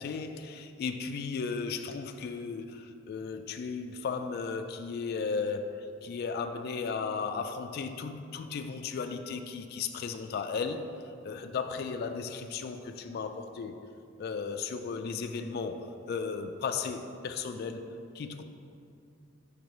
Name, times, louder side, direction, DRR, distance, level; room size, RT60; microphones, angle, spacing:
voice 1, 0.0-10.9 11.2-13.8 14.2-17.9 18.1-18.4, left 5 dB, 50° left, 0.3 m, -35 dB
5.2 x 5.0 x 4.7 m
head